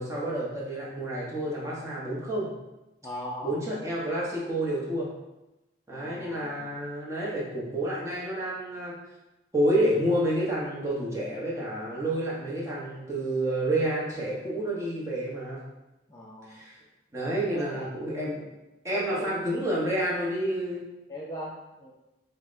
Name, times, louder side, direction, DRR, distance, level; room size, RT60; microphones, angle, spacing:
voice 1, 0.0-2.5 3.4-5.1 5.9-8.9 9.5-15.6 16.5-16.7 17.1-18.4 18.8-20.8, right 1 dB, 15° right, -6 dB, 0.8 m, -29 dB
voice 2, 3.0-3.8 5.9-6.8 16.1-16.5 17.5-17.9 18.9-19.6 21.1-21.9, equal, 15° left, -6 dB, 0.3 m, -40 dB
5.5 x 2.1 x 2.5 m, 0.98 s
head